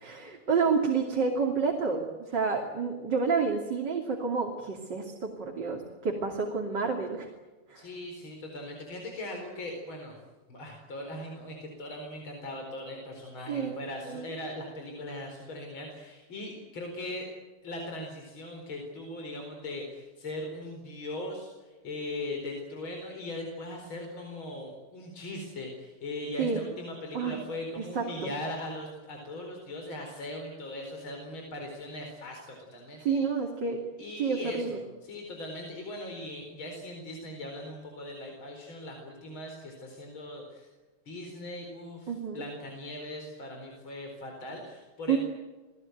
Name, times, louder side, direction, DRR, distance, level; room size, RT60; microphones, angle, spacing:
voice 1, 0.0-7.3 7.7-7.9 13.5-13.7 14.1-14.3 26.4-26.6 27.1-27.4 27.8-28.3 33.1-33.8 34.2-34.8 42.1-42.4 45.1-45.2, right 5 dB, 55° right, 1 dB, 3.5 m, -29 dB
voice 2, 7.8-10.2 10.5-17.3 17.6-33.3 34.0-40.7 41.1-45.2, left 1 dB, 65° left, 2 dB, 5.0 m, -39 dB
29.5 x 19.0 x 9.3 m, 1.2 s
omnidirectional pair, 2.4 m